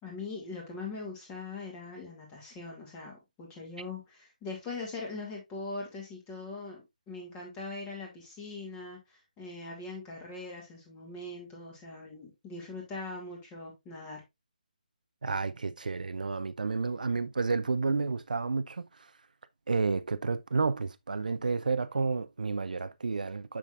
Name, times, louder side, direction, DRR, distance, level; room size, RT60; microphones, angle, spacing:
voice 1, 0.0-14.2, left 3 dB, 15° left, 2.5 m, -41 dB
voice 2, 15.2-18.8 19.7-23.6, right 4 dB, 75° right, 0.6 m, -30 dB
6.9 x 6.3 x 2.5 m
figure-of-eight pair, 155°, 4 cm